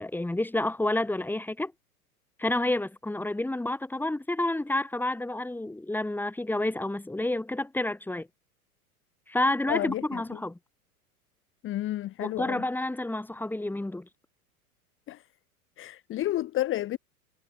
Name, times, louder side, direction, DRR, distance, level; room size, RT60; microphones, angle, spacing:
voice 1, 0.0-1.7 2.4-8.3 9.3-10.6 12.2-14.1, left 1 dB, 5° left, 6.0 m, -29 dB
voice 2, 9.7-10.2 11.6-12.6 15.1-15.2 15.8-17.0, left 14 dB, 25° left, 2.0 m, -31 dB
figure-of-eight pair, 95°, 45 cm